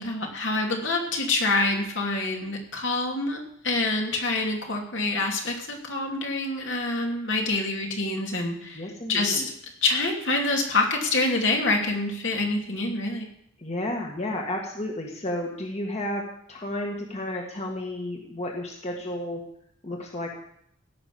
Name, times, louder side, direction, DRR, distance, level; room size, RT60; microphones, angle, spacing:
voice 1, 0.0-3.4 3.6-8.8 9.1-9.5 9.8-13.3, left 2 dB, 65° left, 0 dB, 2.9 m, -26 dB
voice 2, 8.7-9.5 13.6-19.4 19.8-20.4, left 1 dB, 30° left, 0 dB, 1.7 m, -32 dB
17.0 x 6.2 x 8.5 m, 0.71 s
head